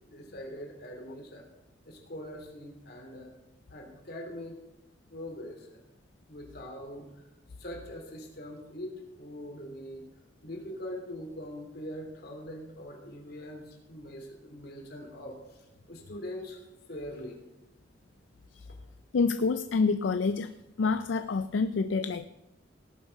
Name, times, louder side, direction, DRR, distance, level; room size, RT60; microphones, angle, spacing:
voice 1, 0.1-1.4 1.9-3.3 3.7-4.6 5.1-5.8 6.3-7.1 7.6-10.0 10.4-15.6 15.9-16.6 16.9-17.4, equal, 60° left, 2 dB, 3.0 m, -42 dB
voice 2, 19.1-20.5 20.8-22.2, left 4 dB, 80° left, 11 dB, 0.4 m, -27 dB
18.0 x 7.3 x 5.2 m, 0.94 s
head